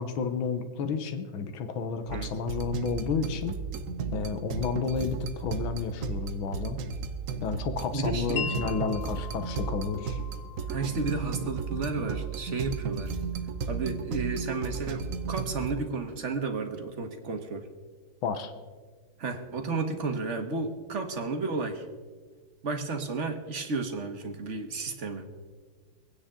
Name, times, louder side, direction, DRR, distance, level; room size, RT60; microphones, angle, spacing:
voice 1, 0.0-3.6 4.1-6.8 7.4-10.2 18.2-18.5, left 5 dB, 80° left, 9 dB, 1.9 m, -31 dB
sound 1, 2.1-15.8, right 5 dB, 65° right, 0.8 m, -34 dB
voice 2, 7.9-8.7 10.7-13.1 13.7-17.7 19.2-21.8 22.6-25.2, right 4 dB, 40° right, 5 dB, 1.5 m, -32 dB
Wind chime, 8.4-14.4, left 8 dB, 65° left, 1.1 m, -43 dB
24.5 x 9.6 x 3.8 m, 1.4 s
omnidirectional pair, 2.2 m